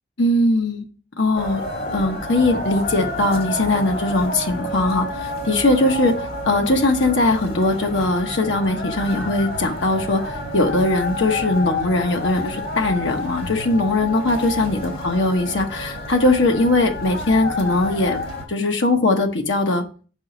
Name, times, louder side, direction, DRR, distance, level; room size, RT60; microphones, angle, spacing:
voice 1, 0.2-0.9 1.2-1.6 1.9-18.2 18.5-19.8, left 2 dB, 70° left, 3 dB, 1.0 m, -20 dB
sound 1, 1.3-18.4, left 1 dB, 50° left, 1.9 m, -29 dB
5.7 x 4.8 x 3.8 m, 0.36 s
head